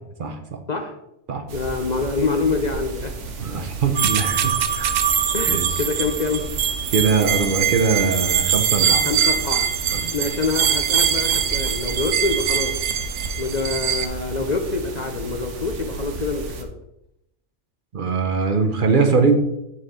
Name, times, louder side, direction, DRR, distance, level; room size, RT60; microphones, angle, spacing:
voice 1, 1.5-3.1 5.3-6.4 9.1-9.7 10.1-12.7 13.4-16.7, left 4 dB, 50° left, 5 dB, 0.5 m, -25 dB
sound 1, 1.5-16.6, right 3 dB, 70° right, 1.2 m, -34 dB
voice 2, 3.4-4.9 5.5-5.7 6.9-9.1 9.9-10.1 17.9-19.4, right 4 dB, 50° right, 5 dB, 0.8 m, -21 dB
sound 2, 4.0-14.1, right 8 dB, 90° right, 1.0 m, -22 dB
6.3 x 4.2 x 5.4 m, 0.85 s
omnidirectional pair, 1.3 m